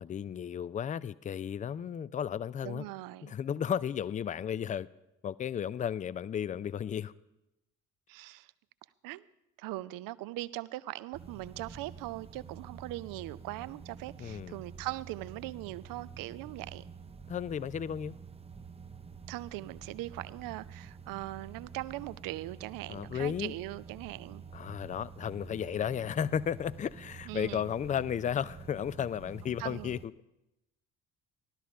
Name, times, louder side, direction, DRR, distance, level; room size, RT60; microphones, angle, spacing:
voice 1, 0.0-2.9 3.2-4.9 5.2-7.1 14.2-14.6 17.3-18.2 22.9-23.6 24.5-30.1, left 8 dB, 20° left, 0.4 m, -34 dB
voice 2, 2.6-3.3 8.1-8.5 9.0-9.2 9.6-16.9 19.3-24.4 27.3-27.7 29.6-30.0, right 17 dB, 55° right, 0.6 m, -40 dB
sound 1, 11.1-30.1, right 6 dB, 15° right, 0.7 m, -48 dB
15.0 x 12.5 x 5.1 m
figure-of-eight pair, 50°, 40 cm